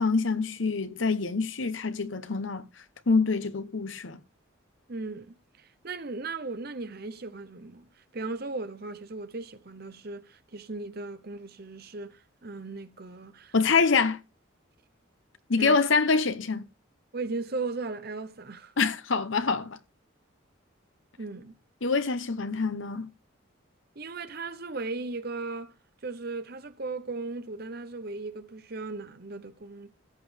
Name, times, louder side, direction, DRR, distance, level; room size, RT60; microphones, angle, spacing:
voice 1, 0.0-2.7 3.1-4.2 13.5-14.2 15.5-16.7 18.8-19.8 21.8-23.1, left 4 dB, 65° left, 0.9 m, -25 dB
voice 2, 4.9-7.9 8.1-13.5 15.6-15.8 17.1-18.7 21.2-21.6 24.0-25.7 26.0-29.9, right 3 dB, 45° right, 0.8 m, -37 dB
14.0 x 8.3 x 3.4 m
head